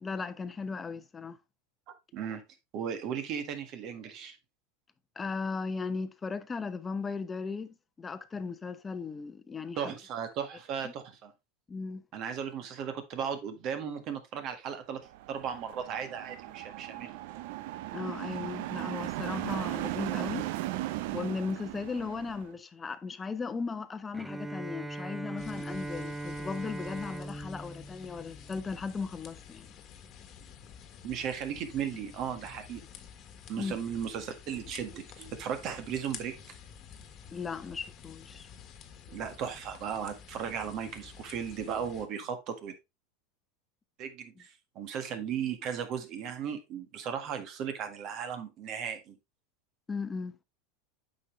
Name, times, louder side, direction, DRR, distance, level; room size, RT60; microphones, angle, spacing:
voice 1, 0.0-1.4 5.2-9.9 10.8-10.9 11.7-12.0 17.9-20.5 21.1-29.7 33.6-33.8 37.3-38.5 49.9-50.4, left 4 dB, 20° left, 0.8 m, -37 dB
voice 2, 2.7-4.4 9.8-11.3 12.1-15.0 15.3-17.2 31.0-32.8 33.5-36.3 39.1-42.7 44.0-49.1, right 7 dB, 50° right, 1.7 m, -36 dB
sound 1, 15.1-22.5, right 16 dB, 65° right, 0.6 m, -37 dB
Bowed string instrument, 24.1-29.1, right 1 dB, 5° right, 0.5 m, -40 dB
sound 2, 25.4-42.1, left 8 dB, 40° left, 1.4 m, -50 dB
8.4 x 5.4 x 3.2 m
hypercardioid pair, 100°, 0 cm